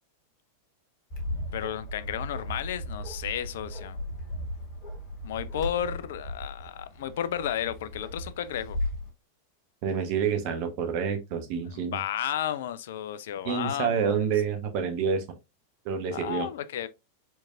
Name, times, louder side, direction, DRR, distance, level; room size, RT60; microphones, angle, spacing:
Bark, 1.1-9.1, left 1 dB, 40° left, 1.5 m, -36 dB
voice 1, 1.5-4.0 5.2-8.8 11.7-14.2 16.1-16.9, left 10 dB, 55° left, 0.4 m, -33 dB
voice 2, 9.8-12.0 13.4-15.2 15.8-16.5, right 6 dB, 45° right, 0.9 m, -28 dB
4.6 x 4.4 x 2.5 m
figure-of-eight pair, 90°, 0 cm